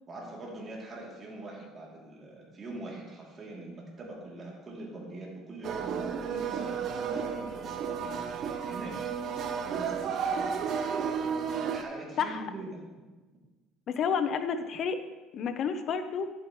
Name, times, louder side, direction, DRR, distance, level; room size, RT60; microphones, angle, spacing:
voice 1, 0.1-9.0 9.7-10.0 11.7-12.8, right 2 dB, 35° right, -3 dB, 3.0 m, -43 dB
sound 1, 5.6-11.8, right 6 dB, 50° right, 0.7 m, -32 dB
voice 2, 13.9-15.0 15.3-16.3, left 6 dB, 50° left, 9 dB, 0.8 m, -30 dB
10.5 x 8.9 x 3.2 m, 1.2 s
cardioid pair, 110°, 0 cm